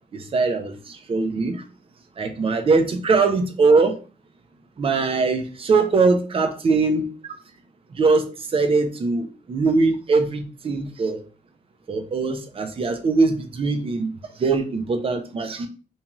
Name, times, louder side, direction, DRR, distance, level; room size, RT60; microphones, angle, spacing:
voice 1, 0.1-1.5 2.2-4.0 4.8-7.1 7.9-11.2 11.9-15.7, right 4 dB, 35° right, 6 dB, 0.5 m, -21 dB
2.7 x 2.3 x 2.9 m, 0.35 s
wide cardioid pair, 130°, 17 cm